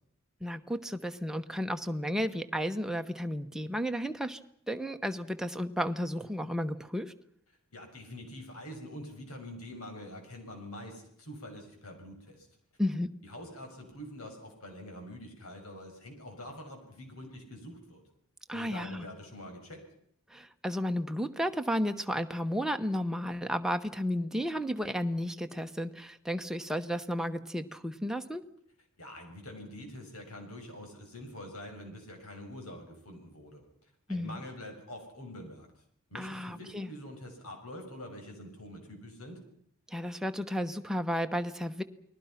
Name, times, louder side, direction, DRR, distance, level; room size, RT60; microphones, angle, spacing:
voice 1, 0.4-4.4 4.7-7.1 12.8-13.1 18.5-19.1 20.3-28.4 34.1-34.4 36.1-36.9 39.9-41.8, equal, ahead, 6 dB, 1.0 m, -33 dB
voice 2, 7.7-12.5 13.2-18.0 18.5-19.8 29.0-33.7 34.1-35.7 36.1-39.4, left 1 dB, 80° left, 3 dB, 6.8 m, -45 dB
29.5 x 20.5 x 5.9 m, 0.69 s
head